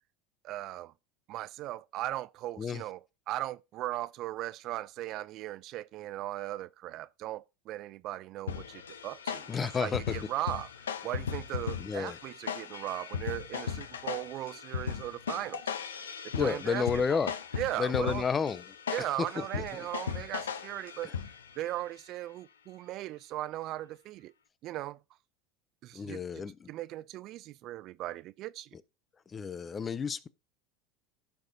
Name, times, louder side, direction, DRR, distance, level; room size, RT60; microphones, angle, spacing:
voice 1, 0.4-0.9 1.3-16.9 17.1-17.2 17.5-18.2 18.9-21.1 21.6-24.3 24.6-25.0 25.8-28.7, right 15 dB, 55° right, 0.3 m, -38 dB
sound 1, 8.5-21.6, left 7 dB, 90° left, 0.6 m, -38 dB
voice 2, 9.5-10.2 11.8-12.2 16.3-17.3 17.8-18.6 19.2-19.9 25.9-26.7 29.3-30.3, left 6 dB, 30° left, 0.6 m, -31 dB
15.0 x 5.1 x 2.7 m
hypercardioid pair, 85°, 0 cm